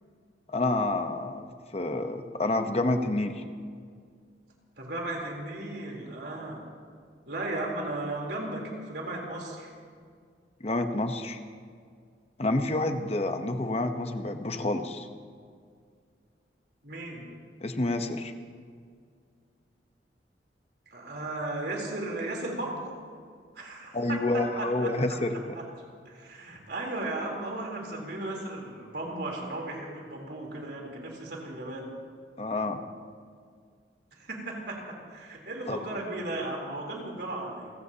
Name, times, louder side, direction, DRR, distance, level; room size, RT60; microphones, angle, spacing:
voice 1, 0.5-1.5 1.7-3.4 10.6-11.4 12.4-15.1 17.6-18.3 23.9-25.5 32.4-32.8 35.7-35.8, left 2 dB, 35° left, 6 dB, 1.0 m, -28 dB
voice 2, 4.8-6.6 7.3-9.7 16.8-17.3 20.9-23.0 23.6-25.7 26.1-31.9 34.1-37.7, right 2 dB, 65° right, -1 dB, 3.6 m, -36 dB
29.5 x 16.5 x 2.9 m, 2.1 s
head